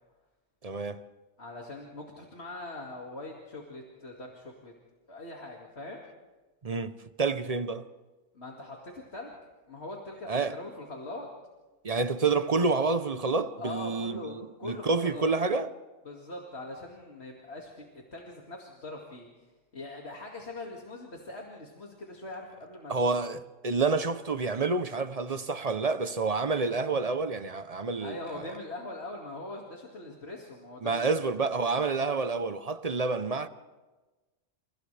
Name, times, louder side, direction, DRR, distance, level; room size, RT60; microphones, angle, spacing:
voice 1, 0.6-1.0 6.6-7.9 10.3-10.6 11.8-14.3 14.6-15.7 22.9-28.2 30.8-33.5, right 4 dB, 35° right, 0.8 m, -28 dB
voice 2, 1.4-4.7 5.1-6.0 8.3-9.4 9.7-11.3 13.6-15.3 16.0-17.9 18.1-19.3 19.7-23.2 28.0-31.2, left 2 dB, 60° left, 2.6 m, -42 dB
30.0 x 29.0 x 3.4 m
omnidirectional pair, 1.2 m